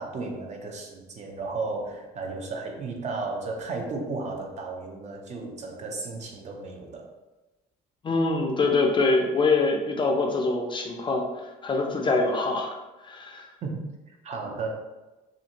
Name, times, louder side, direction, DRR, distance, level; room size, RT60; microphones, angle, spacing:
voice 1, 0.0-7.1 13.6-14.7, right 3 dB, 45° right, 2 dB, 0.5 m, -34 dB
voice 2, 8.0-11.2 11.6-12.7 13.0-13.5, left 3 dB, 30° left, 2 dB, 0.4 m, -24 dB
2.5 x 2.5 x 2.8 m, 1.1 s
cardioid pair, 110°, 17 cm